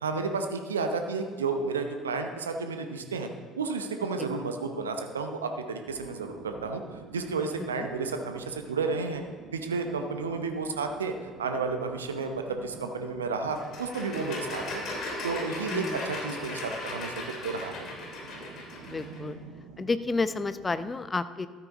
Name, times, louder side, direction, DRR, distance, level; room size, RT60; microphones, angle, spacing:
voice 1, 0.0-3.3 3.6-6.8 7.1-9.2 9.5-14.9 15.2-17.1 17.4-17.8, right 4 dB, 80° right, 5 dB, 0.8 m, -32 dB
sound 1, 5.9-20.9, right 6 dB, 65° right, 1.2 m, -49 dB
sound 2, 13.5-19.2, left 2 dB, 50° left, 3.0 m, -37 dB
voice 2, 15.7-16.0 18.9-19.4 19.8-21.5, left 3 dB, 25° left, 13 dB, 0.6 m, -30 dB
13.0 x 9.1 x 3.9 m, 1.4 s
figure-of-eight pair, 60°, 0 cm